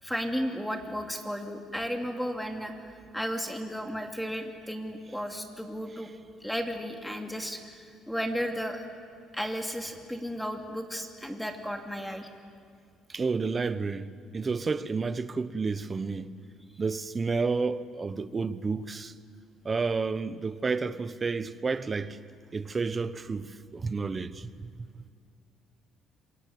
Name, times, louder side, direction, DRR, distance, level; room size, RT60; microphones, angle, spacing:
voice 1, 0.0-2.7 3.1-6.1 6.4-8.8 9.3-12.3, equal, ahead, 2.6 m, -34 dB
voice 2, 13.1-16.3 16.8-19.1 19.6-22.2 22.5-24.5 24.8-24.9, right 4 dB, 25° right, 1.0 m, -30 dB
26.5 x 23.0 x 9.4 m
cardioid pair, 120°, 0 cm